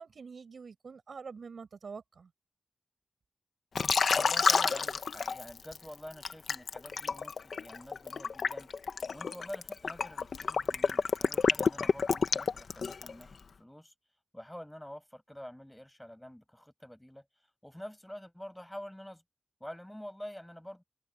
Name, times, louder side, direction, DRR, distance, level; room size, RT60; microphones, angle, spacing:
voice 1, 0.0-2.3, right 5 dB, 65° right, 5.6 m, -46 dB
Liquid, 3.8-5.8 6.2-13.2, left 5 dB, 75° left, 1.0 m, -29 dB
voice 2, 4.1-8.7 9.1-13.9 14.3-17.3 17.6-19.2 19.6-20.8, equal, 5° left, 7.9 m, -47 dB
wide cardioid pair, 145°, 0 cm